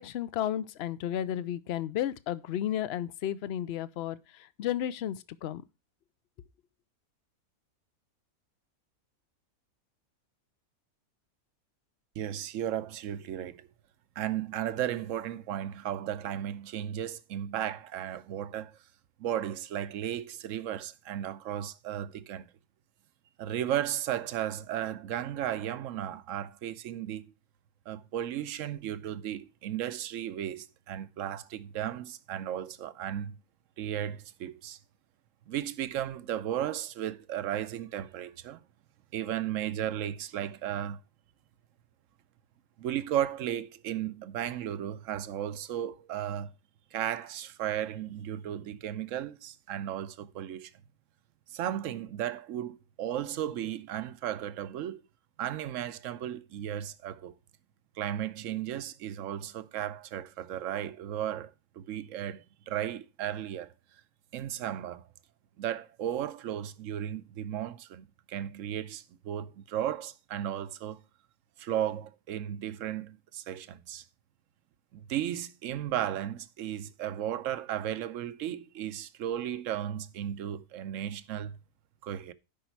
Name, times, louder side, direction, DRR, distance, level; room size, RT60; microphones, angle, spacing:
voice 1, 0.0-5.6, left 11 dB, 60° left, 0.7 m, -33 dB
voice 2, 12.2-13.7 14.2-18.8 19.2-22.5 23.4-27.2 27.9-33.4 33.8-34.8 35.5-38.6 39.1-41.0 42.8-46.5 46.9-50.7 51.5-55.0 55.4-57.3 58.0-63.7 64.3-65.1 65.6-71.0 71.6-74.0 74.9-81.6 82.0-82.3, right 11 dB, 65° right, 1.0 m, -35 dB
12.5 x 5.3 x 4.5 m
omnidirectional pair, 1.5 m